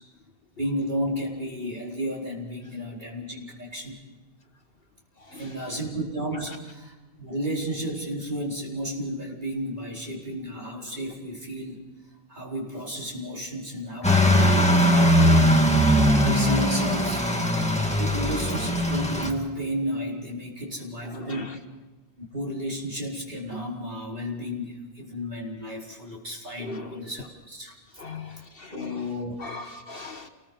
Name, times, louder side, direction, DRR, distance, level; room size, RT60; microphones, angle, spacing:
voice 1, 0.6-4.0 5.3-11.8 12.3-15.4 15.7-17.2 18.0-21.5 22.2-27.7 28.0-28.4 28.7-29.3, equal, 40° right, 4.7 m, -33 dB
voice 2, 5.2-5.5 6.3-6.6 21.0-21.6 26.6-27.1 28.0-29.1 29.4-30.3, left 4 dB, 55° left, 1.6 m, -39 dB
sound 1, 14.0-19.3, equal, 5° left, 2.0 m, -20 dB
28.0 x 20.5 x 5.5 m
omnidirectional pair, 1.2 m